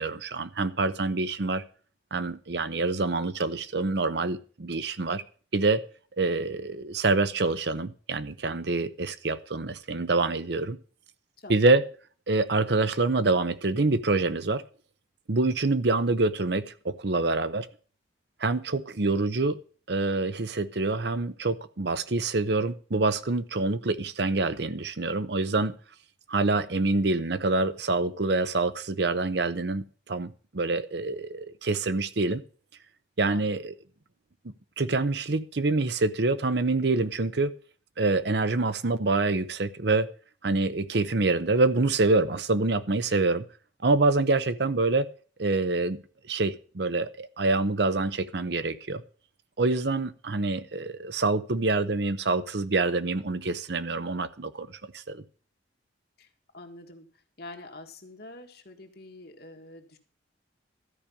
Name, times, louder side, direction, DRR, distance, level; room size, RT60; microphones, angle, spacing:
voice 1, 0.0-1.6 2.1-5.2 5.5-5.8 6.2-10.8 11.5-11.8 12.3-14.6 15.3-17.7 18.4-19.6 19.9-25.7 26.3-32.4 33.2-33.7 34.8-37.5 38.0-40.1 40.4-43.4 43.8-45.1 45.4-46.0 46.3-49.0 49.6-54.7 54.9-55.2, right 3 dB, 60° right, 13 dB, 0.8 m, -26 dB
voice 2, 11.4-11.7 33.3-33.5 56.2-56.3 56.5-57.1 57.4-60.0, left 2 dB, 55° left, 5 dB, 1.8 m, -46 dB
13.0 x 5.2 x 8.5 m, 0.40 s
head